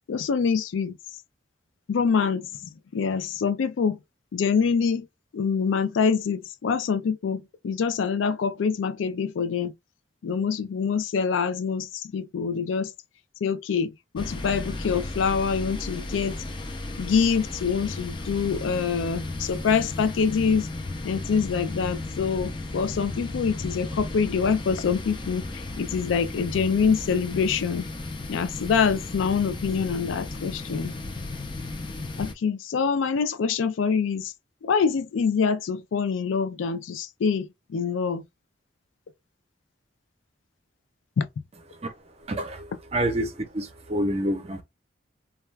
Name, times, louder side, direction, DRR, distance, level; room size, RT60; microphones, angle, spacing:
voice 1, 0.1-1.0 1.9-4.0 4.3-5.1 5.3-9.7 10.2-12.9 13.4-16.4 17.0-20.7 21.0-27.9 28.3-30.9 32.2-34.3 34.6-38.2 41.2-41.3, left 6 dB, 90° left, 0.4 m, -25 dB
sound 1, 14.2-32.3, left 2 dB, 25° left, 0.4 m, -35 dB
voice 2, 42.3-44.6, right 1 dB, 35° right, 0.5 m, -28 dB
2.3 x 2.2 x 3.2 m
head